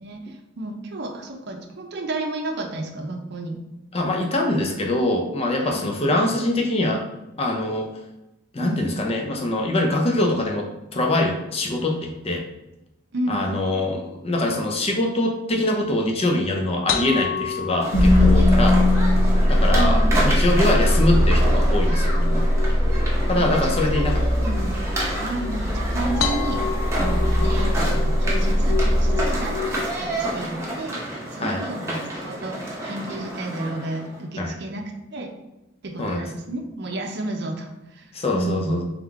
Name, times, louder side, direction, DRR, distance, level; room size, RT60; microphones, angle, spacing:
voice 1, 0.0-3.6 5.6-5.9 8.6-8.9 13.1-13.4 19.7-20.2 23.3-24.8 25.2-26.6 27.0-29.6 30.0-31.0 31.3-34.8 35.1-35.3 35.8-38.1 38.3-38.8, right 2 dB, 55° right, 3 dB, 0.6 m, -31 dB
voice 2, 3.9-7.0 7.4-7.9 8.5-12.4 13.3-18.8 19.5-22.5 23.3-24.2 31.4-31.6 34.4-34.5 36.0-36.2 38.1-38.8, left 1 dB, 30° left, 1 dB, 0.6 m, -23 dB
sound 1, 16.9-30.0, left 6 dB, 80° left, 0.5 m, -33 dB
sound 2, 17.8-34.2, right 1 dB, 15° right, 0.9 m, -30 dB
sound 3, 17.9-30.0, left 1 dB, 55° left, 1.0 m, -20 dB
3.6 x 3.5 x 3.5 m, 0.95 s
head